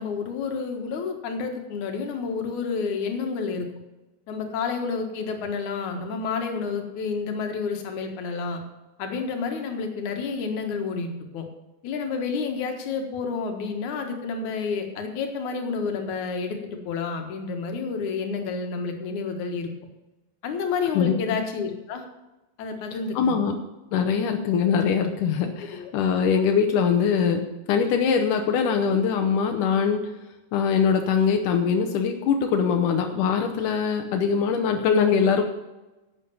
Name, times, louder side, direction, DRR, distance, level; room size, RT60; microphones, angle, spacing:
voice 1, 0.0-3.7 4.3-8.6 9.0-11.5 11.8-19.7 20.4-22.1 22.6-23.6 25.7-25.9, left 5 dB, 70° left, 4 dB, 3.0 m, -30 dB
voice 2, 23.2-23.6 23.9-27.4 27.7-30.0 30.5-35.4, left 6 dB, 90° left, 4 dB, 2.5 m, -22 dB
11.0 x 8.2 x 7.1 m, 1.0 s
omnidirectional pair, 3.6 m